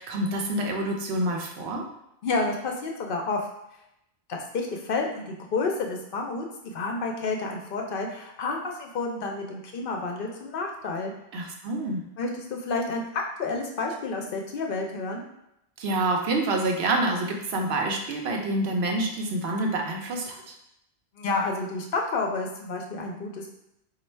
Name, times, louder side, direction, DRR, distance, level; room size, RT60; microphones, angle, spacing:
voice 1, 0.0-1.8 11.3-12.0 15.8-20.5, right 2 dB, 80° right, 2 dB, 0.9 m, -27 dB
voice 2, 2.2-3.4 4.3-6.5 6.7-11.1 12.2-15.2 21.2-23.5, left 3 dB, 65° left, 1 dB, 0.7 m, -30 dB
3.1 x 2.4 x 4.4 m, 0.81 s
omnidirectional pair, 1.1 m